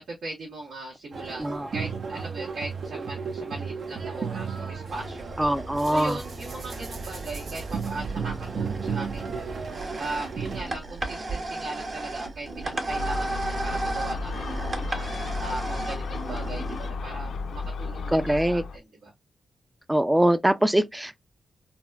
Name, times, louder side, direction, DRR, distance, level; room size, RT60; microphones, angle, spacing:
voice 1, 0.2-5.3 5.8-9.6 10.0-19.1, right 2 dB, 80° right, 1.2 m, -39 dB
sound 1, 1.1-10.6, right 5 dB, 65° right, 0.6 m, -34 dB
sound 2, 4.9-16.9, right 2 dB, 50° right, 1.0 m, -35 dB
voice 2, 5.4-6.2 18.1-18.6 19.9-21.2, right 1 dB, 10° right, 0.4 m, -23 dB
Gull seagull, 12.9-18.8, left 4 dB, 75° left, 0.5 m, -33 dB
3.9 x 2.1 x 2.3 m
cardioid pair, 65°, 0 cm